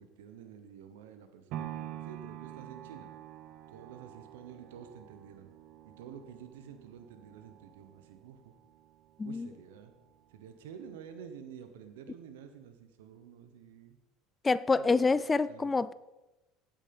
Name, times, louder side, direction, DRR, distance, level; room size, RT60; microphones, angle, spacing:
voice 1, 0.0-3.1 3.7-5.5 5.8-8.5 9.2-9.9 10.3-14.0 14.8-15.2 15.5-15.7, right 8 dB, 85° right, 1.0 m, -50 dB
sound 1, 1.5-9.6 10.1-10.2, right 12 dB, 65° right, 0.8 m, -47 dB
voice 2, 14.4-15.9, left 4 dB, 20° left, 0.4 m, -27 dB
8.9 x 8.6 x 5.3 m
supercardioid pair, 90°, 0 cm